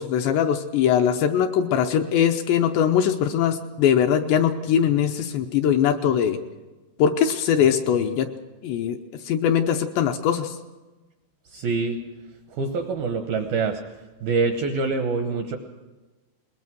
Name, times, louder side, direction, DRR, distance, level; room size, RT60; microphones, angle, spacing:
voice 1, 0.0-6.4 7.0-8.3 8.6-9.0 9.3-10.6, left 8 dB, 80° left, 5 dB, 2.8 m, -21 dB
voice 2, 11.5-12.0 12.5-13.8 14.2-15.6, right 4 dB, 75° right, 5 dB, 2.2 m, -25 dB
21.5 x 21.0 x 6.2 m, 1.2 s
omnidirectional pair, 5.6 m